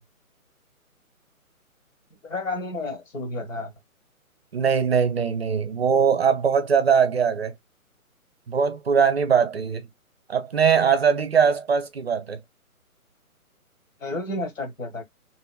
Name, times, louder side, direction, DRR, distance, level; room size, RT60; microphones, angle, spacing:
voice 1, 2.2-3.7 14.0-15.0, left 2 dB, 60° left, 1.3 m, -31 dB
voice 2, 4.5-7.5 8.5-9.9 10.3-12.4, right 6 dB, 45° right, 0.6 m, -21 dB
3.0 x 2.8 x 2.2 m
figure-of-eight pair, 140°, 44 cm